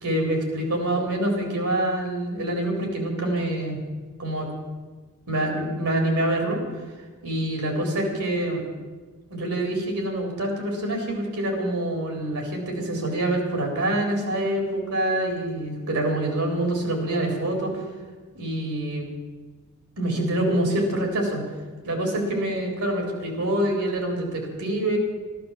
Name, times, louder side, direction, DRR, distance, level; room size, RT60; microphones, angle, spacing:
voice 1, 0.0-3.8 4.2-4.5 5.3-6.6 7.2-8.6 9.3-17.8 18.3-19.1 20.0-21.4 21.8-25.0, right 1 dB, 80° right, 2 dB, 4.1 m, -26 dB
13.0 x 12.5 x 7.4 m, 1.3 s
head